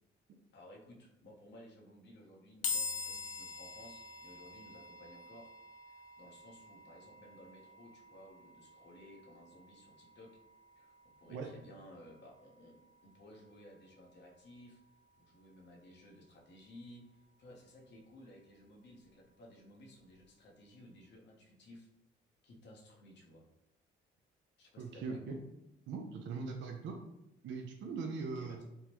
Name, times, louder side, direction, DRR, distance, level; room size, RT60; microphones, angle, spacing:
voice 1, 0.5-5.5 5.9-10.3 10.8-10.9 11.2-12.8 13.0-14.8 15.2-21.9 22.4-23.4 24.6-25.4 28.3-28.6, left 1 dB, 65° left, -1 dB, 0.9 m, -56 dB
sound 1, 2.6-16.0, left 4 dB, 40° left, 0.4 m, -46 dB
voice 2, 24.8-25.4 25.9-27.0 27.4-28.6, right 4 dB, 70° right, 3 dB, 0.5 m, -40 dB
3.5 x 2.0 x 2.9 m, 0.86 s
cardioid pair, 90°, 20 cm